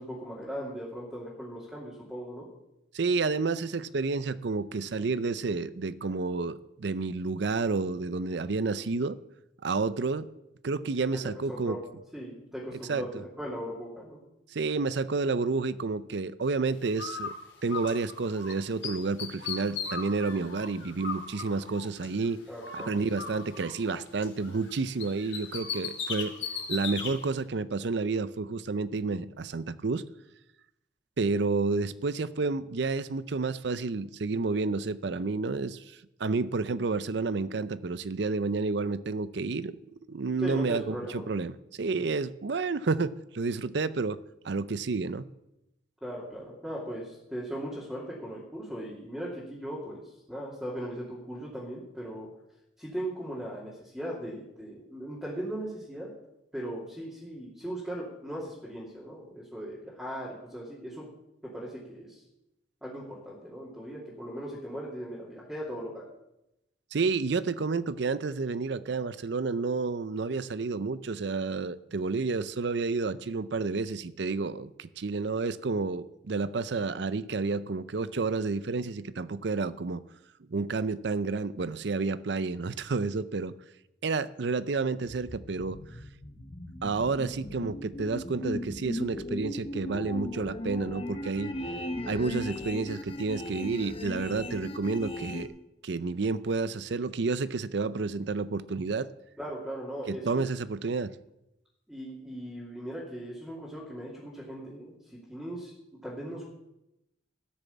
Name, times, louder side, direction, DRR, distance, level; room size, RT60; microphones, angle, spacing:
voice 1, 0.0-2.5 11.1-11.2 11.6-11.8 12.1-14.2 22.5-22.9 40.4-41.3 46.0-52.3 52.8-56.1 56.5-61.0 61.5-62.2 62.8-66.0 99.4-100.4 101.9-105.7 106.0-106.4, right 1 dB, 5° right, 2.8 m, -38 dB
voice 2, 2.9-9.2 9.6-10.3 10.6-11.8 12.9-13.1 14.5-17.3 17.6-22.4 22.7-26.3 26.7-30.0 31.2-39.8 40.1-44.2 44.4-45.3 66.9-80.0 80.5-83.5 84.0-85.8 86.8-91.5 92.1-95.5 95.8-99.1 100.1-101.2, right 4 dB, 65° right, 0.5 m, -30 dB
Bird, 17.0-18.5 18.8-22.3 22.6-24.7 25.0-27.1, left 6 dB, 75° left, 3.0 m, -37 dB
sound 1, 85.1-95.4, left 1 dB, 30° left, 1.0 m, -37 dB
14.0 x 6.8 x 8.4 m
head